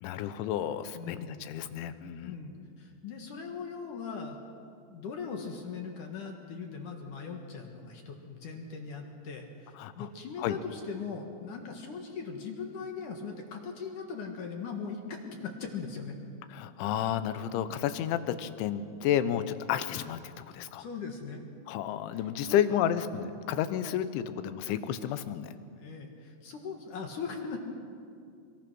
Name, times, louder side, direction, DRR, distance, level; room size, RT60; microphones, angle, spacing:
voice 1, 0.0-2.3 9.8-10.1 10.4-10.6 16.5-20.8 21.7-25.5, left 10 dB, 75° left, 11 dB, 3.0 m, -31 dB
voice 2, 1.0-1.3 2.2-4.4 4.9-16.2 20.6-21.4 22.1-22.8 25.7-27.6, left 5 dB, 60° left, 2 dB, 2.2 m, -40 dB
25.5 x 23.5 x 6.2 m, 2.4 s
omnidirectional pair, 5.9 m